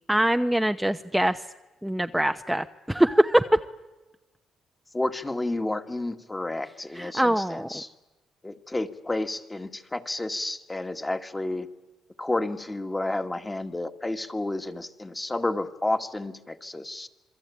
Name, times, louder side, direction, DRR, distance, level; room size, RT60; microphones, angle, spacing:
voice 1, 0.1-1.4 1.8-3.6 6.9-7.7, right 1 dB, 5° right, 7 dB, 0.9 m, -23 dB
voice 2, 4.9-7.9 8.4-11.7 12.2-17.1, left 2 dB, 15° left, 8 dB, 2.0 m, -31 dB
27.0 x 22.5 x 8.6 m, 1.1 s
cardioid pair, 90°, 0 cm